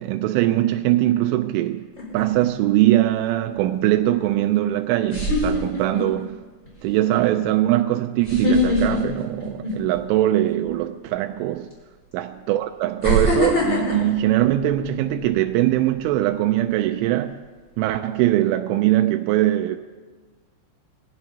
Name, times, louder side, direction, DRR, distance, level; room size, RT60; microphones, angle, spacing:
voice 1, 0.0-1.9 2.1-6.4 6.8-11.7 12.1-17.4 17.8-19.8, right 14 dB, 85° right, 3.1 m, -21 dB
sound 1, 2.0-2.4 4.3-4.4 5.1-6.2 6.7-6.9 8.2-10.1 10.4-10.7 11.7-11.8 13.0-15.3 15.7-16.0, left 1 dB, 15° left, 5.9 m, -23 dB
22.5 x 16.5 x 2.9 m
omnidirectional pair, 5.5 m